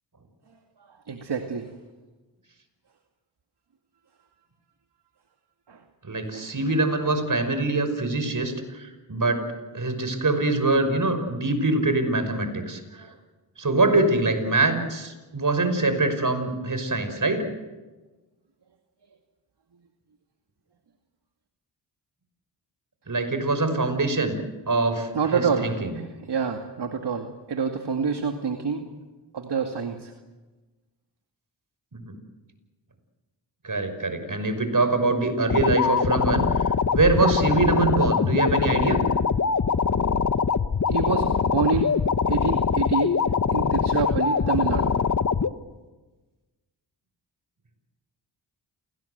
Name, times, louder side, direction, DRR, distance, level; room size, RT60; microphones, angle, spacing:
voice 1, 0.9-1.7 5.7-5.8 6.3-6.5 7.1-7.2 12.9-13.2 25.1-28.8 29.3-30.1 40.9-41.9 42.3-43.1 43.5-44.9, right 5 dB, 60° right, 4 dB, 2.3 m, -27 dB
voice 2, 6.0-9.4 9.7-13.1 13.6-17.4 23.1-24.4 24.7-26.0 31.9-32.1 33.6-39.0, right 2 dB, 40° right, 8 dB, 5.8 m, -24 dB
sound 1, 35.5-45.5, left 6 dB, 40° left, 1.2 m, -23 dB
27.5 x 19.0 x 8.1 m, 1.2 s
supercardioid pair, 45°, 46 cm